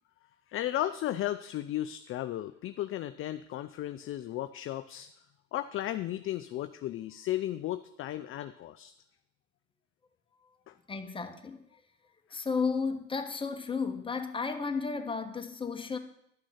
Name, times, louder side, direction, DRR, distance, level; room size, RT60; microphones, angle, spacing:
voice 1, 0.5-5.1 5.5-8.9 10.7-10.8 12.3-12.4, left 13 dB, 35° left, 11 dB, 0.5 m, -35 dB
voice 2, 10.9-11.7 12.3-16.0, left 5 dB, 15° left, 5 dB, 1.2 m, -33 dB
11.5 x 6.1 x 5.8 m, 0.76 s
hypercardioid pair, 75°, 38 cm